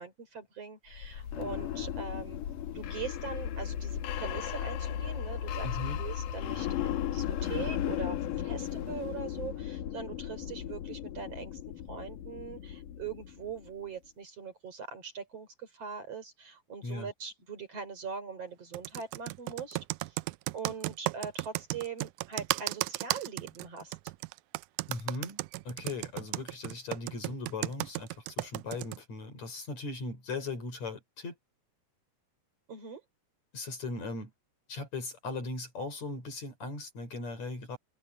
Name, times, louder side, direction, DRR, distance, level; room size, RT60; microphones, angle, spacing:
voice 1, 0.0-2.4 2.7-5.7 6.0-11.6 11.9-20.2 20.5-24.0 32.7-33.0, right 6 dB, 45° right, 4.9 m, -42 dB
sound 1, 0.9-13.7, left 10 dB, 70° left, 3.1 m, -36 dB
voice 2, 5.6-6.0 16.8-17.1 24.9-25.4 25.7-31.4 33.5-34.3 34.7-37.8, left 3 dB, 55° left, 6.3 m, -38 dB
Computer keyboard, 18.7-29.0, right 19 dB, 80° right, 1.9 m, -34 dB
omnidirectional pair, 3.8 m